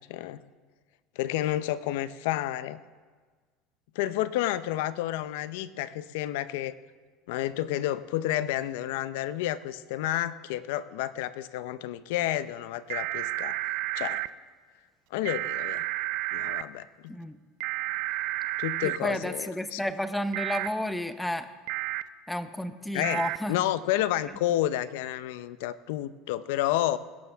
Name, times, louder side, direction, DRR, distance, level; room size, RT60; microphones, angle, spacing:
voice 1, 0.1-0.4 1.2-2.8 4.0-6.7 7.3-13.6 14.0-14.2 15.1-15.9 16.3-17.1 18.6-19.8 22.9-23.2 23.5-27.0, left 13 dB, 80° left, 15 dB, 0.6 m, -30 dB
sound 1, 12.9-14.3 15.2-16.6 17.6-19.0 20.3-20.7 21.7-22.0 23.0-23.4, right 17 dB, 70° right, 0.4 m, -31 dB
voice 2, 18.8-21.5 22.3-23.6, left 1 dB, 5° left, 11 dB, 0.8 m, -32 dB
20.5 x 11.0 x 3.5 m, 1.5 s
supercardioid pair, 120°, 0 cm